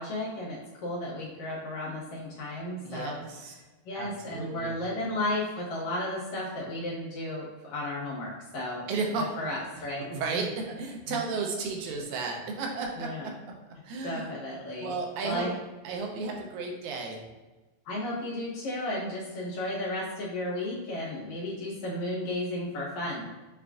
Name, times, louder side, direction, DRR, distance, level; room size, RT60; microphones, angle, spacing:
voice 1, 0.0-3.1 3.9-8.9 9.2-10.1 10.3-10.4 11.1-11.2 13.0-13.3 14.0-14.9 15.2-15.5 17.9-23.3, left 1 dB, 70° left, -6 dB, 2.4 m, -34 dB
voice 2, 2.8-3.5 4.0-4.7 8.9-9.5 10.0-13.3 13.8-14.3 14.8-15.5 15.8-17.2, right 4 dB, 85° right, 1 dB, 2.0 m, -33 dB
6.6 x 2.4 x 2.4 m, 1.2 s
omnidirectional pair, 3.4 m